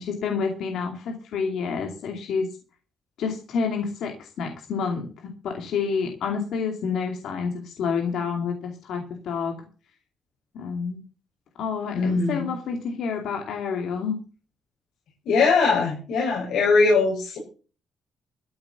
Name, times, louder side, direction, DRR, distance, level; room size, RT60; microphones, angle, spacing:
voice 1, 0.0-2.6 3.2-9.6 10.5-11.0 11.6-14.2, left 5 dB, 75° left, 3 dB, 2.5 m, -29 dB
voice 2, 11.9-12.5 15.3-17.4, left 4 dB, 90° left, -2 dB, 6.2 m, -21 dB
13.5 x 7.8 x 7.1 m, 0.37 s
cardioid pair, 170°, 0 cm